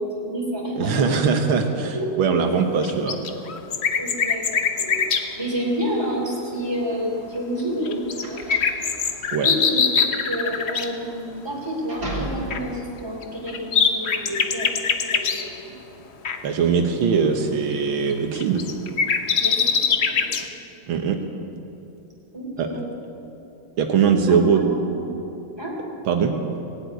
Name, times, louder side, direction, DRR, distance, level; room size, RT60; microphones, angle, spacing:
voice 1, 0.0-1.2 1.9-2.1 3.9-5.1 5.4-8.6 9.4-14.7 15.0-15.5 19.4-20.5 22.3-22.8 23.1-23.2 24.3-24.7 24.9-25.1 25.6-25.8, equal, 10° right, -2 dB, 3.3 m, -29 dB
voice 2, 0.8-3.2 9.3-9.5 16.4-18.6 20.9-21.2 22.6-22.7 23.8-24.6 26.1-26.3, right 6 dB, 85° right, 4 dB, 1.9 m, -21 dB
sound 1, 2.8-5.3 7.9-10.9 12.5-12.6 13.2-15.5 16.3-16.4 18.1-20.5, left 6 dB, 55° left, 0.7 m, -23 dB
sound 2, 6.8-12.8, right 1 dB, 40° right, 3.6 m, -35 dB
18.0 x 8.2 x 9.4 m, 2.8 s
omnidirectional pair, 2.2 m